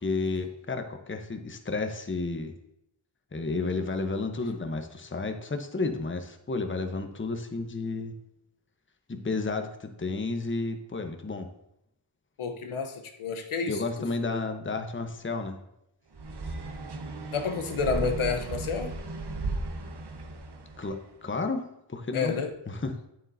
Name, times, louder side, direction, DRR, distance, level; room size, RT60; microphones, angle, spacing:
voice 1, 0.0-2.5 3.3-8.1 9.1-11.5 13.7-15.6 20.8-22.4 22.7-23.0, left 3 dB, 25° left, 6 dB, 1.0 m, -32 dB
voice 2, 12.4-13.8 14.2-14.4 17.3-18.9 22.1-22.5, left 5 dB, 75° left, 6 dB, 1.0 m, -30 dB
main door, 16.1-21.0, right 2 dB, 55° right, 1.1 m, -36 dB
8.9 x 7.7 x 2.7 m, 0.81 s
cardioid pair, 40°, 49 cm